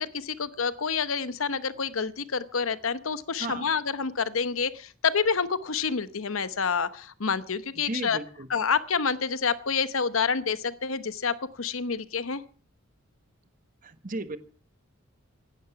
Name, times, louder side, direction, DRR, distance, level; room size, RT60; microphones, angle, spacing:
voice 1, 0.0-8.2 8.5-12.4, left 5 dB, 75° left, 14 dB, 1.0 m, -28 dB
voice 2, 7.8-8.5 13.8-14.4, right 2 dB, 40° right, 11 dB, 1.3 m, -35 dB
16.0 x 12.0 x 5.9 m, 0.43 s
head